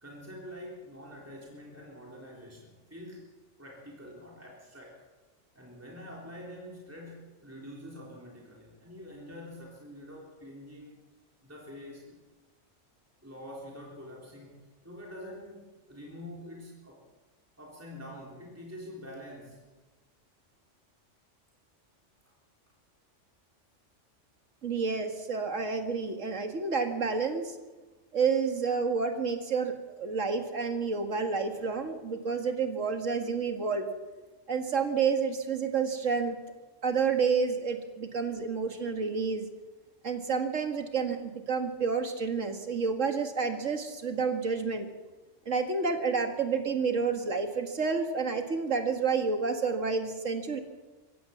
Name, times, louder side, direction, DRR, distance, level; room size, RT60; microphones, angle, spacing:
voice 1, 0.0-3.3 3.6-5.0 5.5-11.0 11.4-12.2 13.2-17.1 17.6-19.7, equal, 10° right, -3 dB, 3.8 m, -46 dB
voice 2, 24.6-27.5 28.1-33.9 34.5-36.4 36.8-39.5 40.0-44.9 45.5-50.6, right 5 dB, 85° right, 5 dB, 2.2 m, -29 dB
25.5 x 15.0 x 7.3 m, 1.2 s
omnidirectional pair, 1.3 m